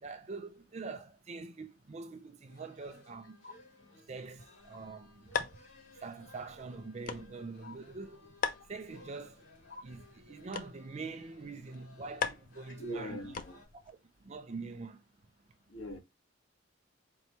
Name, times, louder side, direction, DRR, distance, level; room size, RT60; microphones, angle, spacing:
voice 1, 0.0-3.4 4.1-5.5 6.0-8.4 8.7-9.5 9.8-13.3 13.7-15.0, right 4 dB, 35° right, 0.4 m, -44 dB
sound 1, 2.5-13.7, left 2 dB, 85° left, 3.0 m, -59 dB
sound 2, 4.6-13.9, left 6 dB, 45° left, 0.4 m, -42 dB
voice 2, 12.8-13.6 15.7-16.0, equal, 70° left, 1.6 m, -41 dB
4.5 x 3.0 x 2.7 m
head